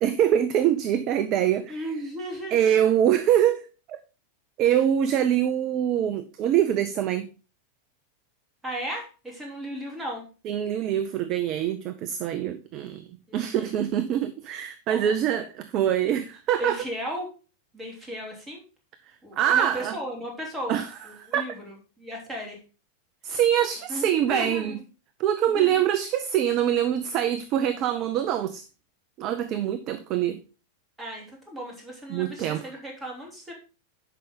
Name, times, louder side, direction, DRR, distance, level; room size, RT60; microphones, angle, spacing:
voice 1, 0.0-1.9 2.5-3.6 3.9-4.0 4.6-7.3 10.4-13.0 13.3-16.8 19.4-20.0 20.7-20.9 21.2-21.4 23.2-24.8 25.2-28.6 29.2-30.4 32.1-32.7, right 10 dB, 40° right, 0.6 m, -24 dB
voice 2, 1.7-2.8 8.6-10.3 13.3-13.7 14.9-15.5 16.6-17.3 17.7-18.6 19.2-22.6 23.9-24.8 25.5-25.8 31.0-33.5, equal, 15° right, 3.2 m, -35 dB
10.5 x 5.5 x 3.7 m
figure-of-eight pair, 90°, 0 cm